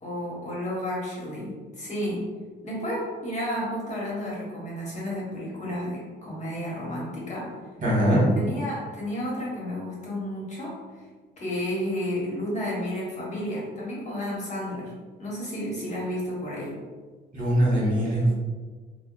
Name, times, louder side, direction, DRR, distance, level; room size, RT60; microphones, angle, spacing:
voice 1, 0.0-2.2 2.6-7.5 8.3-10.8 11.4-14.9 15.2-16.7, equal, 35° left, -5 dB, 1.2 m, -32 dB
voice 2, 7.8-8.3 17.3-18.3, right 1 dB, 40° right, -6 dB, 1.4 m, -21 dB
3.4 x 2.2 x 2.4 m, 1.4 s
cardioid pair, 90°, 20 cm